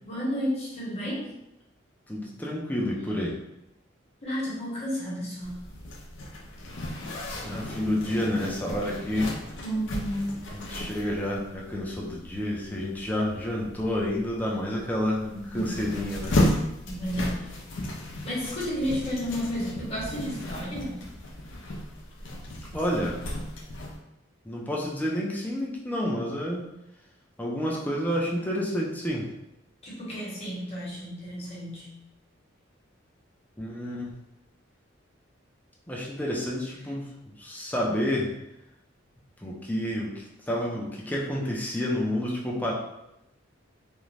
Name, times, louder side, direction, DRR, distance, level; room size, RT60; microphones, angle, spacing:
voice 1, 0.0-1.3 4.2-5.7 9.6-10.4 15.3-15.8 16.8-17.5 18.2-21.1 29.8-31.9, equal, 35° left, -7 dB, 1.0 m, -32 dB
voice 2, 2.1-3.3 7.4-9.4 10.5-16.3 22.7-23.2 24.4-26.6 27.4-29.3 33.6-34.1 35.9-37.1 37.4-38.3 39.4-42.7, left 1 dB, 10° left, -3 dB, 0.5 m, -29 dB
Zipper (clothing), 5.4-24.0, left 1 dB, 70° left, 0.5 m, -34 dB
2.5 x 2.1 x 3.1 m, 0.87 s
head